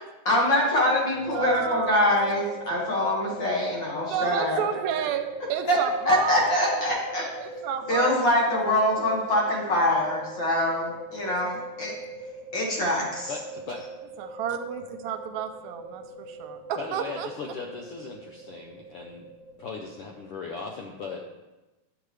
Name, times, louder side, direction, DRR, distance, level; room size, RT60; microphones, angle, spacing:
voice 1, 0.0-4.6 5.7-5.8 6.1-7.3 7.9-12.0 12.5-13.3, left 1 dB, 45° left, -3 dB, 2.1 m, -24 dB
sound 1, 1.1-20.2, right 2 dB, 55° right, 1.7 m, -41 dB
voice 2, 1.3-2.4 4.0-6.8 7.4-8.3 11.2-11.5 14.2-17.3, right 9 dB, 85° right, 7 dB, 1.9 m, -32 dB
voice 3, 13.3-13.8 16.8-19.3 19.6-21.2, left 4 dB, 75° left, 1 dB, 1.4 m, -38 dB
10.0 x 7.0 x 3.2 m, 1.1 s
omnidirectional pair, 3.3 m